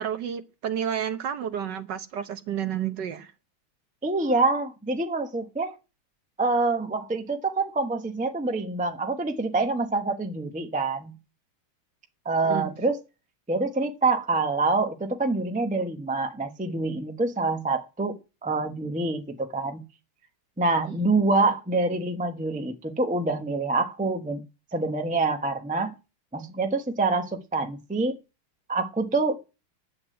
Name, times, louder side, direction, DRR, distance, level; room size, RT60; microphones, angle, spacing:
voice 1, 0.0-3.3 12.4-12.7 20.9-21.0, right 9 dB, 60° right, 1.4 m, -31 dB
voice 2, 4.0-5.8 6.4-11.1 12.2-13.0 13.5-19.8 20.6-24.4 24.7-25.9 26.3-28.2 28.7-29.5, right 3 dB, 5° right, 0.6 m, -26 dB
9.7 x 8.2 x 7.8 m
omnidirectional pair, 2.3 m